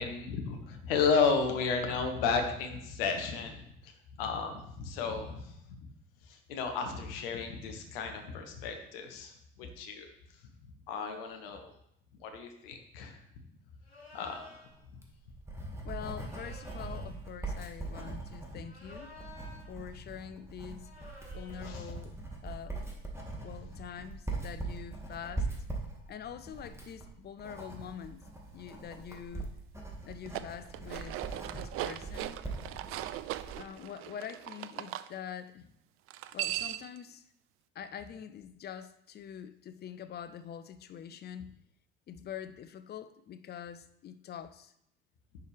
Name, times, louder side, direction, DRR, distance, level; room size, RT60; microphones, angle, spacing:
voice 1, 0.0-5.5 6.3-9.3 9.6-10.1 10.9-11.7 12.2-13.2 14.1-14.6 21.6-21.9, left 5 dB, 65° left, 1.1 m, -33 dB
sound 1, 13.8-14.8 16.2-17.2 18.6-19.8 20.8-21.8, left 2 dB, 90° left, 1.1 m, -53 dB
Writing, 14.8-33.6, right 2 dB, 10° right, 1.8 m, -41 dB
voice 2, 15.8-19.2 19.7-20.9 21.3-22.2 22.4-22.8 23.4-25.5 26.1-28.3 28.5-29.5 30.0-31.2 31.5-32.4 33.6-35.7 36.3-37.2 37.7-41.5 42.1-44.7, left 8 dB, 35° left, 0.6 m, -45 dB
sound 2, 30.1-35.1 36.1-37.0, right 14 dB, 45° right, 0.4 m, -39 dB
10.5 x 4.6 x 3.4 m
figure-of-eight pair, 50°, 30 cm